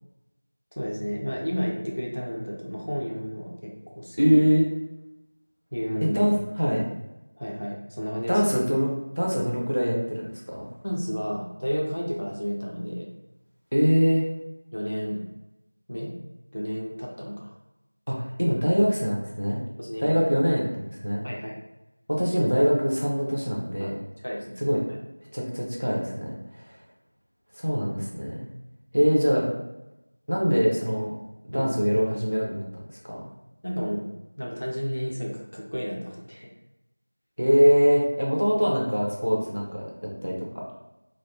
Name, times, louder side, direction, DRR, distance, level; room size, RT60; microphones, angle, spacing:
voice 1, 0.7-4.4 5.7-6.3 6.6-6.8 7.4-8.5 10.8-13.1 14.7-15.2 15.9-16.1 16.5-17.5 18.6-18.7 19.8-20.2 21.2-21.6 23.8-23.9 24.2-24.6 27.7-27.9 31.5-31.7 33.6-34.1 34.4-36.5, equal, 30° left, -2 dB, 0.3 m, -32 dB
voice 2, 4.2-4.6 6.0-6.8 8.3-10.7 13.7-14.2 18.1-19.6 20.0-21.2 22.1-24.0 24.6-24.8 25.3-26.8 27.5-28.5 28.9-29.5 30.3-31.1 31.5-32.6 33.1-33.2 37.4-40.6, equal, 35° right, -3 dB, 0.5 m, -23 dB
2.5 x 2.0 x 2.8 m, 0.97 s
figure-of-eight pair, 180°, 0 cm